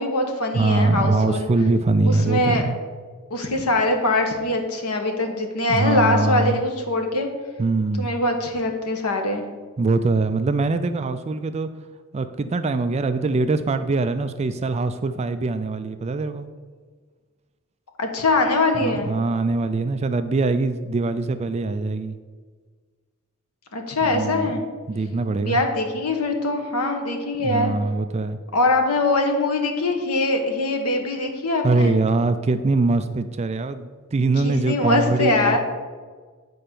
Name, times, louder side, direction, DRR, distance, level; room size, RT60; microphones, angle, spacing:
voice 1, 0.0-1.5 2.0-2.6 3.3-7.3 8.0-9.4 18.0-19.1 23.7-24.6 25.4-27.7 28.5-32.0 34.4-35.6, left 2 dB, 80° left, 4 dB, 1.3 m, -22 dB
voice 2, 0.5-2.8 5.7-6.6 7.6-8.1 9.8-11.7 12.1-16.5 18.8-22.1 24.0-24.6 24.9-25.6 27.4-28.4 31.6-35.6, right 3 dB, 30° right, 10 dB, 0.3 m, -22 dB
9.4 x 4.4 x 6.8 m, 1.5 s
head